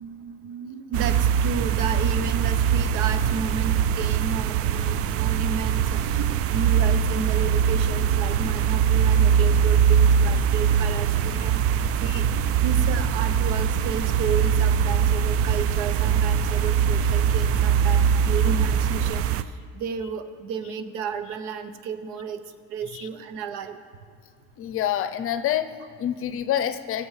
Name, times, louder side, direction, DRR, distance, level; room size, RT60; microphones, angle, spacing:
voice 1, 0.0-11.6 12.0-22.4 22.7-23.8, right 6 dB, 85° right, 10 dB, 0.9 m, -32 dB
sound 1, 0.9-19.4, right 8 dB, 50° right, 0.4 m, -22 dB
voice 2, 24.6-27.1, left 10 dB, 45° left, 11 dB, 0.6 m, -27 dB
20.5 x 7.8 x 3.2 m, 2.2 s
cardioid pair, 130°, 30 cm